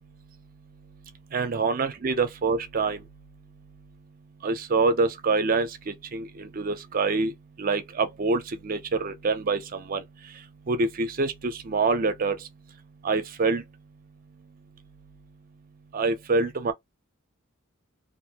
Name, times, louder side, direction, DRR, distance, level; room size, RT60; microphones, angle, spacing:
voice 1, 1.3-3.1 4.4-12.5 13.0-13.6 15.9-16.7, right 3 dB, 40° right, 0.5 m, -26 dB
2.5 x 2.5 x 2.8 m
head